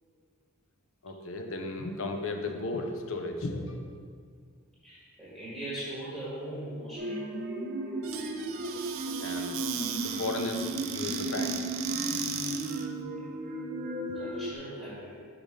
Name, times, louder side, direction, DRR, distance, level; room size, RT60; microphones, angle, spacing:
voice 1, 1.0-3.8 9.2-9.6 10.0-11.7, left 2 dB, 60° left, 4 dB, 0.7 m, -35 dB
voice 2, 4.8-7.2 13.2-13.3 14.1-15.2, right 1 dB, 5° left, -10 dB, 1.6 m, -40 dB
sound 1, 7.0-14.5, right 1 dB, 40° right, 0.9 m, -35 dB
Squeak / Cupboard open or close, 8.0-12.9, right 8 dB, 60° right, 0.4 m, -37 dB
5.6 x 4.8 x 5.1 m, 2.1 s
head